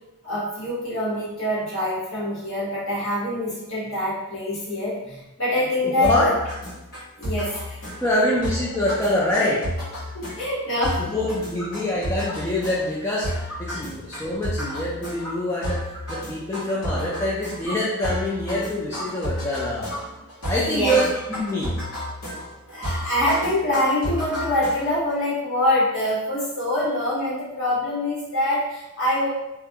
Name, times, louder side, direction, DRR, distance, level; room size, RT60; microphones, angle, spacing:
voice 1, 0.2-6.4 7.2-7.8 10.1-11.0 13.7-13.8 17.7-17.8 20.5-21.0 22.7-29.3, left 1 dB, 55° left, -8 dB, 1.1 m, -25 dB
voice 2, 5.8-6.3 8.0-9.6 11.1-15.8 16.1-19.9 20.5-21.8, left 1 dB, 10° left, -7 dB, 0.3 m, -25 dB
sound 1, 6.0-25.1, equal, 80° left, 1.2 m, -32 dB
2.4 x 2.2 x 2.7 m, 0.96 s
head